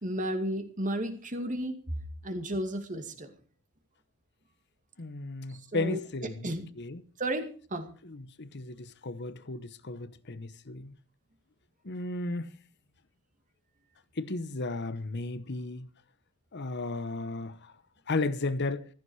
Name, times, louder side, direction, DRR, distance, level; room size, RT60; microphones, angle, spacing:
voice 1, 0.0-1.8 2.2-3.3 5.5-6.6 7.2-7.9, right 1 dB, 35° right, 2.4 m, -33 dB
voice 2, 5.0-6.5 6.8-7.0 8.0-11.0 11.8-12.5 14.2-15.9 16.5-17.7 18.1-18.9, left 2 dB, 50° left, 1.0 m, -34 dB
15.0 x 14.5 x 4.8 m
head